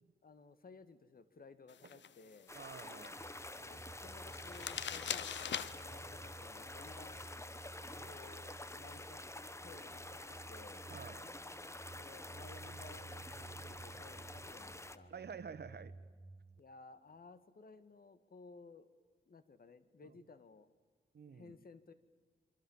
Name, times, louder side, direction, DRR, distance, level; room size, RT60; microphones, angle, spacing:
voice 1, 0.2-2.5 3.6-7.3 8.0-10.2 10.5-10.9 12.0-15.1 16.6-18.9 19.3-20.7 21.3-21.9, left 4 dB, 55° left, 12 dB, 1.8 m, -57 dB
sound 1, 1.7-9.1, left 9 dB, 85° left, 0.8 m, -47 dB
sound 2, 2.5-15.0, left 1 dB, 15° left, 1.2 m, -49 dB
voice 2, 2.5-3.3 7.9-8.1 10.9-11.3 15.1-15.9 21.1-21.6, right 6 dB, 65° right, 13 dB, 1.4 m, -49 dB
sound 3, 3.2-16.6, right 3 dB, 15° right, 1.1 m, -55 dB
27.0 x 24.0 x 7.3 m, 1.5 s
cardioid pair, 70°, 18 cm